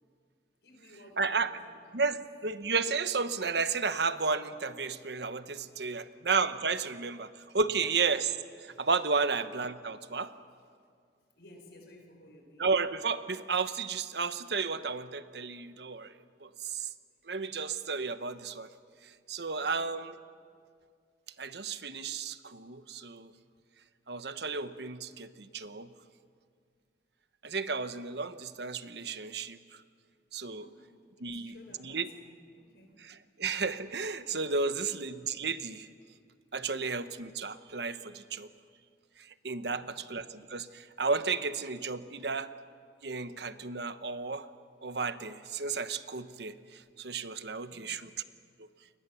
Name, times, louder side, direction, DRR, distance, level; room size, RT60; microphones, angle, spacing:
voice 1, 0.6-2.2 5.8-6.2 7.6-7.9 11.4-12.7 19.6-19.9 30.6-33.0 34.7-34.8 39.6-40.0 47.7-47.9, left 1 dB, 70° left, 4 dB, 5.0 m, -57 dB
voice 2, 1.2-1.5 1.9-10.3 12.6-16.1 16.4-16.9 17.3-18.7 19.3-20.2 21.4-23.3 24.1-25.9 27.4-29.6 30.3-30.7 31.2-31.5 31.8-32.1 33.0-35.9 36.5-38.5 39.4-42.5 43.0-44.5 44.8-48.1, right 4 dB, 70° right, 11 dB, 1.0 m, -33 dB
29.0 x 22.5 x 7.0 m, 2.1 s
head